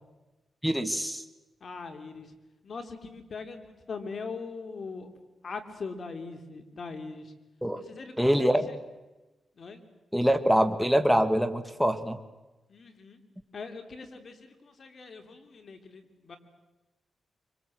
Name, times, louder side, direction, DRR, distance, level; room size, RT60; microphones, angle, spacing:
voice 1, 0.6-1.2 7.6-7.8 8.2-8.7 10.1-12.2, equal, ahead, 8 dB, 1.8 m, -24 dB
voice 2, 1.6-2.4 2.6-5.2 5.4-7.3 7.7-8.8 9.6-9.8 12.7-13.2 13.5-16.4, left 4 dB, 55° left, 6 dB, 3.3 m, -41 dB
25.0 x 25.0 x 7.8 m, 1.1 s
cardioid pair, 70°, 0 cm